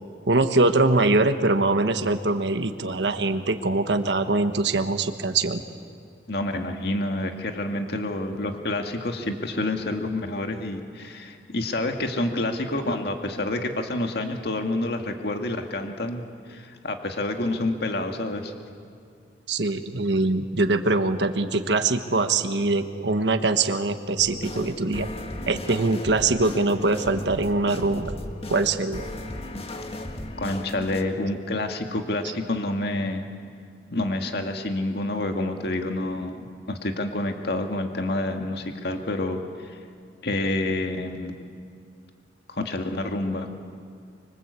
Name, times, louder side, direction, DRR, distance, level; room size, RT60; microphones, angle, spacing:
voice 1, 0.3-5.6 19.5-25.1 25.5-28.1 28.5-29.0, right 3 dB, 80° right, 8 dB, 1.3 m, -23 dB
voice 2, 6.3-18.5 30.4-33.3 33.9-39.8 40.2-41.4 42.5-43.5, left 2 dB, 65° left, 4 dB, 2.0 m, -28 dB
sound 1, 24.2-31.0, left 1 dB, 35° left, 1.7 m, -36 dB
25.0 x 25.0 x 8.3 m, 2.3 s
head